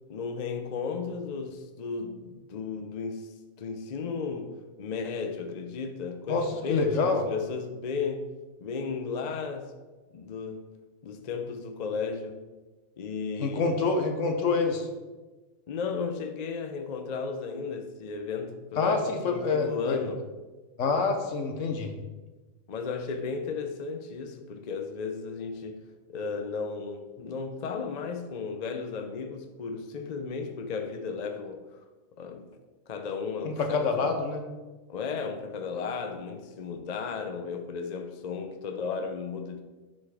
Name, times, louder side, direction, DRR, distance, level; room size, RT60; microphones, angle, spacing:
voice 1, 0.1-4.5 4.8-8.3 8.6-9.7 10.1-10.6 11.0-12.4 13.0-13.7 15.7-20.2 22.7-25.8 26.1-31.8 32.2-32.5 32.9-34.2 34.9-39.6, left 5 dB, 45° left, 0.5 m, -34 dB
voice 2, 6.3-7.2 13.4-14.9 18.8-20.0 20.8-21.9 33.4-34.4, left 4 dB, 70° left, 1.2 m, -26 dB
8.6 x 4.3 x 4.8 m
omnidirectional pair, 1.4 m